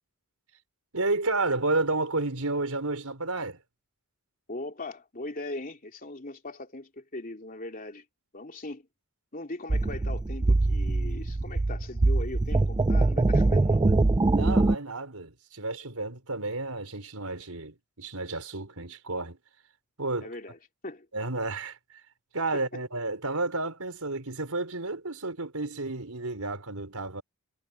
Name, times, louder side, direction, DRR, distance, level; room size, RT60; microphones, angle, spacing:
voice 1, 0.9-3.6 14.3-19.4 20.0-20.3 21.1-21.8 22.3-27.2, right 2 dB, 80° right, 4.4 m, -31 dB
voice 2, 4.5-8.0 8.3-8.9 9.3-14.0 20.2-21.1 22.5-22.8, left 2 dB, 40° left, 3.1 m, -40 dB
sound 1, 9.7-14.8, right 2 dB, 20° right, 0.3 m, -23 dB
head